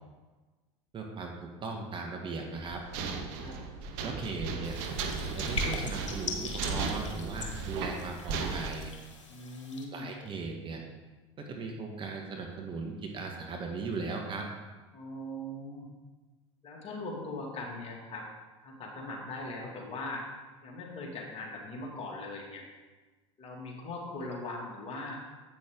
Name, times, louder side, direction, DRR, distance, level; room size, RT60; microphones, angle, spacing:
voice 1, 0.9-2.8 4.0-4.8 5.3-8.9 9.9-10.8 11.4-14.5, right 4 dB, 30° right, 1 dB, 1.4 m, -38 dB
sound 1, 2.6-8.7, right 4 dB, 60° right, 1.0 m, -35 dB
sound 2, 4.6-9.8, left 4 dB, 85° left, 1.2 m, -41 dB
voice 2, 9.3-10.1 14.9-15.9 16.6-18.3 18.6-20.2 20.6-22.6 23.4-25.2, left 2 dB, 40° left, -2 dB, 2.2 m, -40 dB
8.5 x 6.0 x 3.7 m, 1.3 s
hypercardioid pair, 80°, 15 cm